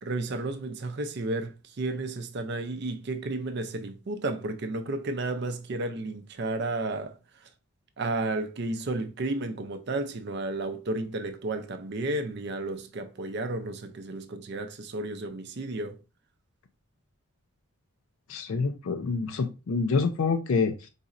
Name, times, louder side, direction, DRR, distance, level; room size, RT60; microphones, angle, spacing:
voice 1, 0.0-7.5 8.0-16.0, right 2 dB, 50° right, 0.4 m, -32 dB
voice 2, 18.3-20.9, left 4 dB, 65° left, 0.4 m, -27 dB
4.1 x 4.0 x 2.4 m
head